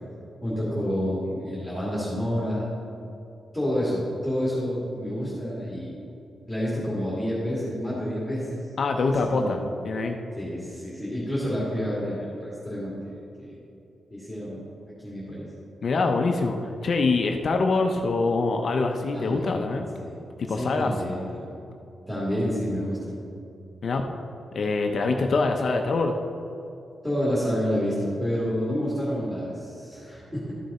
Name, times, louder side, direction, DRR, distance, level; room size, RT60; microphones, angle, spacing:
voice 1, 0.4-2.7 3.5-6.0 6.5-8.7 9.3-9.6 10.4-13.5 14.1-14.6 15.0-15.5 19.1-19.6 19.9-20.1 20.5-21.5 22.1-23.2 27.0-30.5, equal, ahead, -9 dB, 2.2 m, -29 dB
voice 2, 8.8-10.2 15.8-19.9 20.4-20.9 23.8-24.0 24.5-26.1, left 3 dB, 50° left, 4 dB, 0.6 m, -24 dB
13.0 x 6.6 x 4.2 m, 2.7 s
wide cardioid pair, 160°, 0 cm